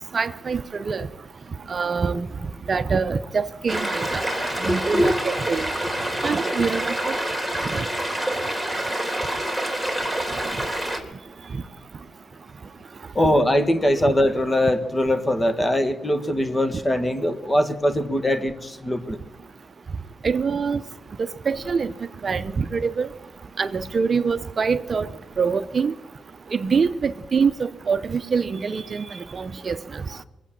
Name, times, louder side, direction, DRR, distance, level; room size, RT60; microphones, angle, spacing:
voice 1, 0.1-1.1 1.7-2.3 2.7-4.2 4.6-5.7 6.2-7.1 7.7-7.8 20.2-20.8 21.5-21.9 22.2-23.1 23.6-25.1 25.4-25.9 26.5-30.0, right 5 dB, 45° right, 0.6 m, -24 dB
sound 1, 3.7-11.0, right 1 dB, 5° left, 3.1 m, -27 dB
voice 2, 4.6-5.1 6.1-6.3 13.1-19.2, left 1 dB, 20° left, 1.6 m, -22 dB
22.5 x 8.3 x 7.3 m
cardioid pair, 85°, 0 cm